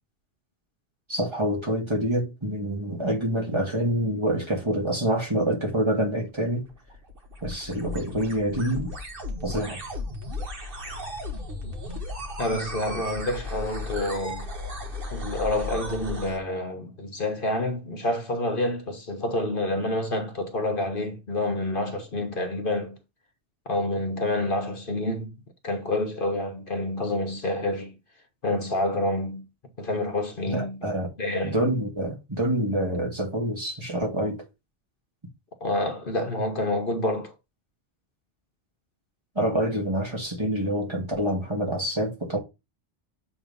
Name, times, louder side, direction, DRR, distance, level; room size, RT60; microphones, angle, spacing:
voice 1, 1.1-6.7 7.4-8.9 9.4-9.8 30.5-31.1 31.4-34.4 39.4-42.4, right 1 dB, 25° right, 2.1 m, -26 dB
sound 1, 6.5-16.4, left 1 dB, 55° right, 1.8 m, -35 dB
voice 2, 12.4-14.5 15.1-23.0 23.7-25.4 25.6-27.9 28.4-29.4 29.8-30.8 31.2-31.6 35.6-37.3, left 1 dB, 50° left, 1.2 m, -28 dB
7.7 x 3.2 x 5.4 m
omnidirectional pair, 1.1 m